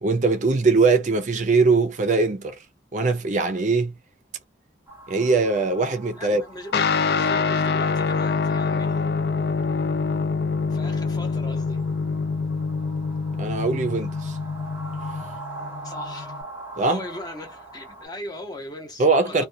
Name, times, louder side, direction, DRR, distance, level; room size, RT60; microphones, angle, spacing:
voice 1, 0.0-2.6 2.9-3.9 5.1-6.4 13.4-14.4 16.8-17.0 19.0-19.4, right 3 dB, 45° right, 0.5 m, -21 dB
sound 1, 4.9-18.1, right 2 dB, 10° right, 0.9 m, -43 dB
voice 2, 6.1-9.0 10.7-11.8 15.8-16.4 16.8-19.4, left 1 dB, 25° left, 0.8 m, -38 dB
Guitar, 6.7-16.4, left 4 dB, 60° left, 0.4 m, -25 dB
2.3 x 2.2 x 2.6 m
head